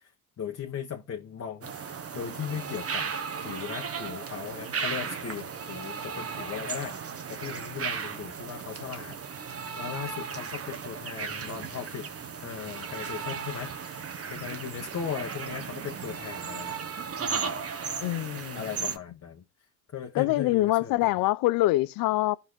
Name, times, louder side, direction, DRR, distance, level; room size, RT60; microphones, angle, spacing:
voice 1, 0.4-3.1 3.4-9.2 9.4-12.1 12.4-16.8 17.2-17.5 18.5-19.4 19.9-21.2, left 8 dB, 45° left, 1.3 m, -38 dB
sound 1, 1.6-19.0, right 6 dB, 40° right, 1.2 m, -36 dB
voice 2, 18.0-18.6 20.1-22.4, left 17 dB, 70° left, 0.5 m, -25 dB
15.5 x 5.5 x 2.6 m
cardioid pair, 85°, 36 cm